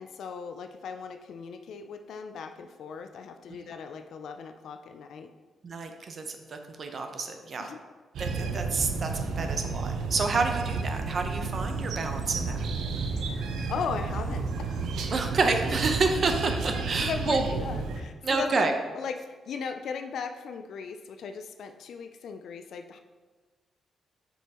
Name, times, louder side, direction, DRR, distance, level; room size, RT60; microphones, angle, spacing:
voice 1, 0.0-5.3 7.6-7.8 13.7-14.5 17.0-23.0, left 6 dB, 70° left, 7 dB, 0.3 m, -37 dB
voice 2, 5.6-7.7 8.2-12.7 15.1-17.5 18.2-18.7, right 3 dB, 40° right, 5 dB, 0.6 m, -29 dB
sound 1, 8.1-18.0, right 4 dB, 85° right, 0.6 m, -32 dB
7.2 x 5.4 x 2.9 m, 1.4 s
wide cardioid pair, 155°, 0 cm